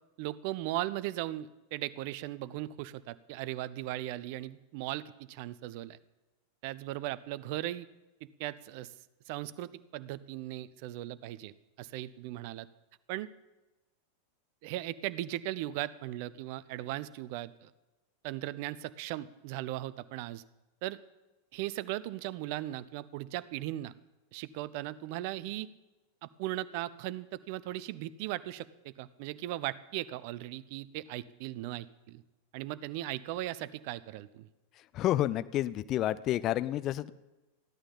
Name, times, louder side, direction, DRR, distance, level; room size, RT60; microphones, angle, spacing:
voice 1, 0.2-6.0 6.6-7.9 8.4-8.9 9.3-11.5 11.8-12.7 13.1-13.3 14.6-17.7 18.2-20.4 20.8-21.0 21.5-23.9 24.3-25.7 26.2-32.2 32.5-34.5, right 15 dB, 45° right, 17 dB, 0.5 m, -38 dB
voice 2, 34.9-37.1, left 13 dB, 35° left, 14 dB, 0.5 m, -29 dB
15.0 x 11.0 x 5.4 m, 1.1 s
figure-of-eight pair, 90°, 0 cm